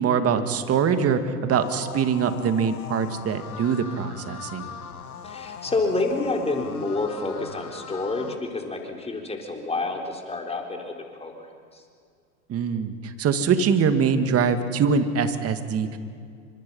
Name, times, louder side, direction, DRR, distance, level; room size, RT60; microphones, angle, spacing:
voice 1, 0.0-4.7 12.5-16.0, right 6 dB, 35° right, 8 dB, 2.3 m, -23 dB
sound 1, 1.5-8.4, left 7 dB, 90° left, 1.7 m, -40 dB
voice 2, 5.2-11.5 11.7-11.8, left 3 dB, 15° left, 2 dB, 4.1 m, -28 dB
30.0 x 26.0 x 5.7 m, 2.3 s
hypercardioid pair, 95°, 43 cm